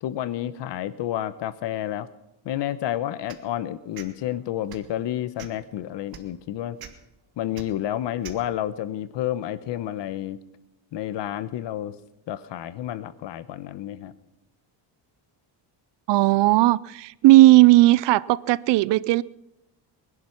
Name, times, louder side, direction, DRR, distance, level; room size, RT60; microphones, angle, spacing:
voice 1, 0.0-2.1 2.4-6.8 7.4-10.4 10.9-11.9 12.3-14.1, left 12 dB, 70° left, 1.0 m, -30 dB
sound 1, 3.3-3.5 3.9-4.1 4.6-4.9 5.4-5.6 6.1-6.2 6.8-6.9 7.5-7.6 8.2-8.4, right 8 dB, 50° right, 1.5 m, -41 dB
voice 2, 16.1-19.2, right 18 dB, 65° right, 0.5 m, -16 dB
20.5 x 11.0 x 5.9 m
cardioid pair, 165°, 45 cm